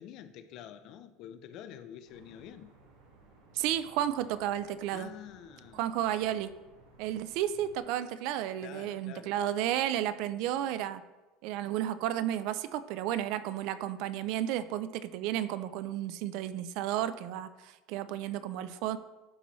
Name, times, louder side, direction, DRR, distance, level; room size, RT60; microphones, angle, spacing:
voice 1, 0.0-2.7 4.9-5.8 8.6-9.3, left 10 dB, 45° left, 0.5 m, -47 dB
sound 1, 2.1-7.8, right 3 dB, 70° right, 1.7 m, -60 dB
voice 2, 3.5-5.1 5.7-6.5 7.0-11.0 11.4-19.0, right 11 dB, 55° right, 0.4 m, -32 dB
11.5 x 4.2 x 3.1 m
cardioid pair, 165°, 0 cm